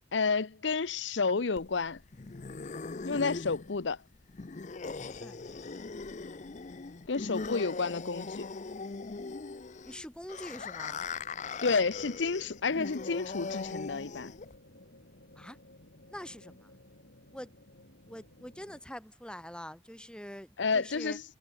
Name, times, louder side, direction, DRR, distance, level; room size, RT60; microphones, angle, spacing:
voice 1, 0.1-2.0 3.0-4.0 7.1-8.5 11.6-14.3 20.6-21.2, left 4 dB, 85° left, 0.8 m, -30 dB
sound 1, 1.6-14.6, left 4 dB, 40° left, 0.6 m, -40 dB
voice 2, 9.8-11.1 15.4-15.6 16.1-16.7 17.3-17.5 18.1-21.2, equal, 5° left, 6.5 m, -45 dB
sound 2, 10.5-18.8, left 1 dB, 70° left, 4.4 m, -57 dB
head